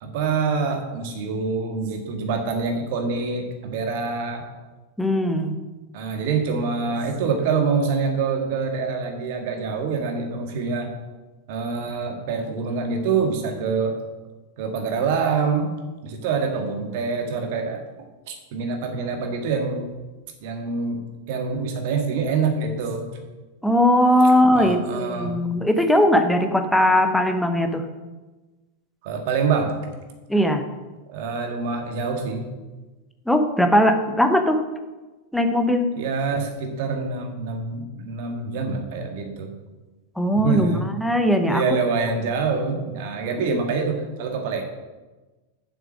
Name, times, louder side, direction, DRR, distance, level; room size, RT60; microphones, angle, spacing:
voice 1, 0.0-4.4 5.9-10.9 11.5-14.0 14.6-15.7 16.0-17.8 18.3-19.9 20.4-21.0 21.3-23.0 24.5-25.3 29.0-29.7 31.1-32.4 36.0-39.5 40.4-40.8 41.5-44.6, right 5 dB, 50° right, 3 dB, 1.7 m, -25 dB
voice 2, 5.0-5.5 23.6-27.8 30.3-30.6 33.3-34.6 35.3-36.0 40.2-41.8 43.4-43.6, left 1 dB, 5° left, 6 dB, 0.9 m, -19 dB
7.3 x 6.8 x 6.2 m, 1.2 s
figure-of-eight pair, 90°, 0 cm